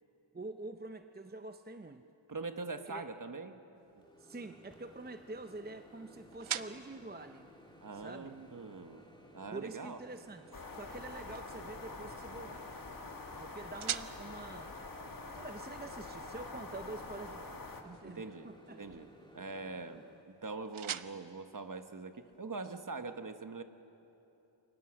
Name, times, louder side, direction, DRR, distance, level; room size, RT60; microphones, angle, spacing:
voice 1, 0.3-2.0 2.8-3.0 4.2-7.5 7.9-8.4 9.5-12.7 13.4-14.7 15.3-19.0, right 2 dB, 20° right, 7 dB, 0.7 m, -46 dB
voice 2, 2.3-3.6 7.8-9.1 9.3-10.0 18.0-18.5 18.8-19.1 19.3-23.6, right 3 dB, 40° right, 8 dB, 1.2 m, -43 dB
sound 1, 3.7-22.6, right 9 dB, 85° right, 0.7 m, -48 dB
Microwave oven, 4.0-20.2, left 1 dB, 10° left, 2.3 m, -58 dB
sound 2, 10.5-17.8, left 3 dB, 45° left, 1.8 m, -46 dB
28.0 x 23.0 x 6.4 m, 2.9 s
wide cardioid pair, 100°, 47 cm